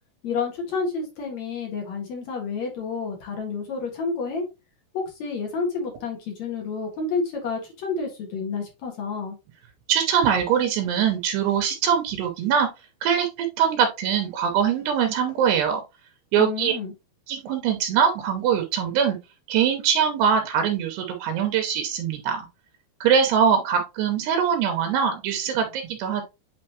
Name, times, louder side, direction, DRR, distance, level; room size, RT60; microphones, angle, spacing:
voice 1, 0.2-4.4 4.9-9.3 16.4-16.9, left 4 dB, 50° left, 1 dB, 2.3 m, -29 dB
voice 2, 9.9-12.7 13.0-15.8 16.3-16.7 17.3-19.2 19.5-22.5 23.0-26.2, right 7 dB, 80° right, 5 dB, 2.9 m, -22 dB
8.9 x 4.1 x 2.9 m, 0.25 s
omnidirectional pair, 5.1 m